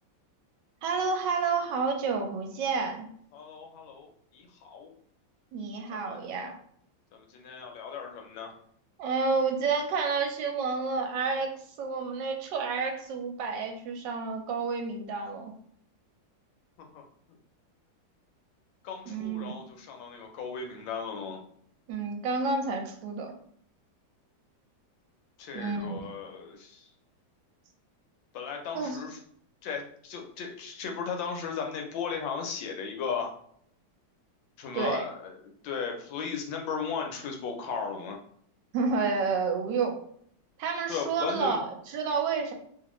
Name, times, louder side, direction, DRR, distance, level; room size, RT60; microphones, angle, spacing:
voice 1, 0.8-3.1 5.5-6.6 9.0-15.5 19.1-19.6 21.9-23.3 25.5-26.0 28.7-29.0 34.7-35.0 38.7-40.0 40.6-42.5, right 4 dB, 75° right, 3 dB, 1.2 m, -30 dB
voice 2, 3.3-4.1 4.3-4.9 6.1-6.2 7.3-8.5 16.9-17.0 18.8-21.4 25.4-26.8 28.3-29.2 29.6-33.3 34.6-35.3 35.6-38.2 40.9-41.6, left 6 dB, 75° left, 3 dB, 1.3 m, -36 dB
3.1 x 2.4 x 2.9 m, 0.65 s
omnidirectional pair, 2.2 m